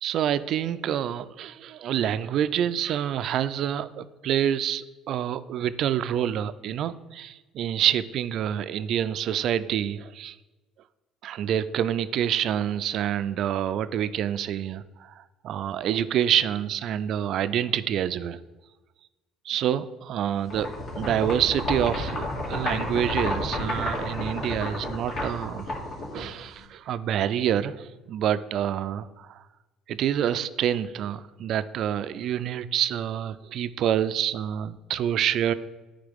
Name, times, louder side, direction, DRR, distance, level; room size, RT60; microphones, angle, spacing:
voice 1, 0.0-10.4 11.2-18.4 19.5-20.7 21.0-25.7 26.1-29.4 29.9-35.5, right 10 dB, 60° right, 14 dB, 0.3 m, -27 dB
sound 1, 20.5-26.6, left 1 dB, 55° left, 2.0 m, -31 dB
9.5 x 3.3 x 3.5 m, 1.1 s
supercardioid pair, 85°, 0 cm